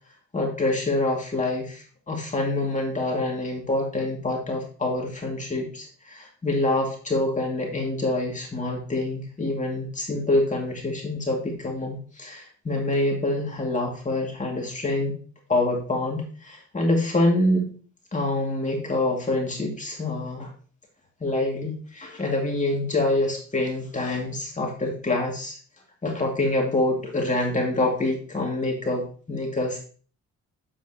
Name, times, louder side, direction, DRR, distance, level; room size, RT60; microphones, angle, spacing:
voice 1, 0.3-15.1 15.5-17.7 18.1-20.5 21.2-25.6 26.0-29.8, left 2 dB, 25° left, -1 dB, 2.3 m, -26 dB
8.7 x 7.5 x 2.9 m, 0.41 s
cardioid pair, 90°, 30 cm